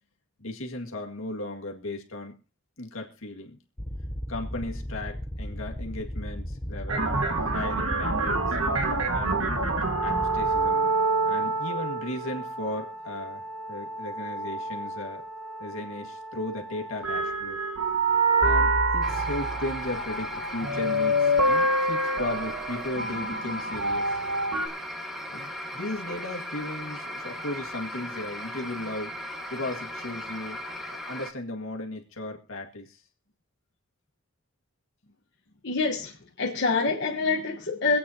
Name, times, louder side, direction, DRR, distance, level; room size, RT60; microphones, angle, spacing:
voice 1, 0.4-2.3 2.8-3.6 4.3-7.1 7.5-8.6 9.1-9.6 10.0-11.0 11.2-15.2 15.6-17.6 18.4-24.2 25.3-29.1 29.5-30.6 31.1-33.0, left 1 dB, 70° left, 1.9 m, -36 dB
sound 1, 3.8-10.7, equal, 15° left, 0.7 m, -35 dB
sound 2, 6.9-24.7, right 2 dB, 80° right, 1.7 m, -27 dB
sound 3, 19.0-31.3, equal, ahead, 1.3 m, -37 dB
voice 2, 35.6-38.0, left 3 dB, 55° left, 1.2 m, -26 dB
25.0 x 8.6 x 2.8 m
head